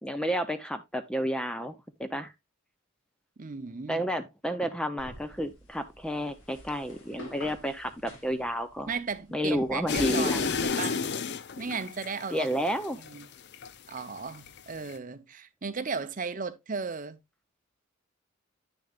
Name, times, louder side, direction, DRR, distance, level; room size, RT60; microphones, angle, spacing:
voice 1, 0.0-2.3 3.9-8.9 9.3-10.4 12.3-13.0, equal, 5° left, 0.5 m, -31 dB
voice 2, 3.4-4.1 8.9-11.0 11.6-12.5 13.1-13.3 13.9-17.2, right 5 dB, 35° right, 0.7 m, -35 dB
sound 1, 5.0-10.7, equal, 65° left, 2.7 m, -47 dB
sound 2, 9.9-14.0 14.4-15.0, left 5 dB, 50° left, 0.5 m, -31 dB
10.0 x 6.5 x 2.4 m
head